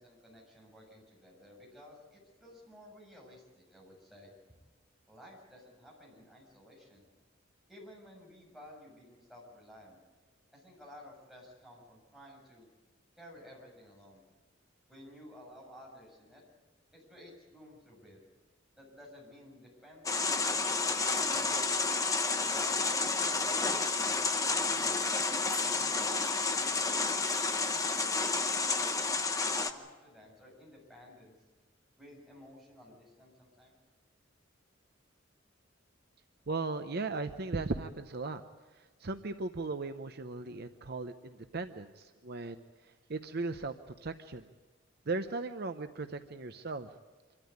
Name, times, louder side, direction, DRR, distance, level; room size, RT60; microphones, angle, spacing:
voice 1, 0.0-4.3 5.1-7.1 7.7-10.0 10.5-12.7 13.2-14.2 14.9-16.4 16.9-18.2 18.7-21.9 22.5-22.7 23.1-25.1 25.6-27.2 27.8-29.2 29.6-31.3 32.0-33.8, left 1 dB, ahead, -4 dB, 7.2 m, -54 dB
sound 1, 20.0-29.7, left 4 dB, 15° left, 0.9 m, -30 dB
voice 2, 36.5-38.4 38.7-44.5 45.1-46.9, right 3 dB, 55° right, 8 dB, 0.8 m, -37 dB
26.0 x 13.5 x 9.6 m, 1.3 s
head